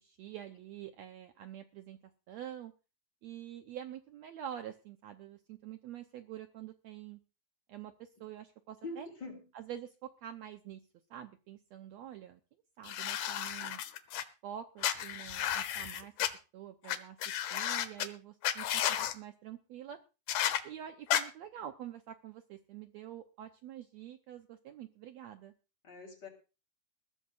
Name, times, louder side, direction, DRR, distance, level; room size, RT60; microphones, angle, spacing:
voice 1, 0.0-2.7 3.2-7.2 7.7-9.1 9.5-12.4 12.8-13.8 14.4-16.1 16.5-20.0 20.6-25.5, right 10 dB, 85° right, 7 dB, 1.5 m, -47 dB
voice 2, 8.8-9.4 25.8-26.3, left 2 dB, 30° left, 3 dB, 4.0 m, -43 dB
sound 1, 12.8-14.2 14.8-16.3 16.9-17.0 17.2-18.1 18.4-19.1 20.3-20.6 21.1-21.2, left 11 dB, 70° left, 2.3 m, -32 dB
21.5 x 15.0 x 2.5 m, 0.32 s
omnidirectional pair, 4.2 m